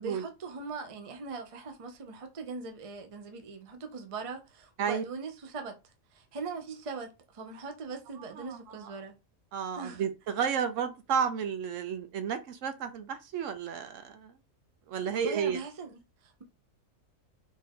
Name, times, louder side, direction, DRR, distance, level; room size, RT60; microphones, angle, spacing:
voice 1, 0.0-5.8 6.1-9.1 9.8-10.0 15.1-16.4, right 4 dB, 35° right, 0.6 m, -40 dB
voice 2, 8.4-8.9 9.5-14.3 14.9-15.6, right 7 dB, 70° right, 1.0 m, -32 dB
4.2 x 2.7 x 3.5 m
omnidirectional pair, 1.4 m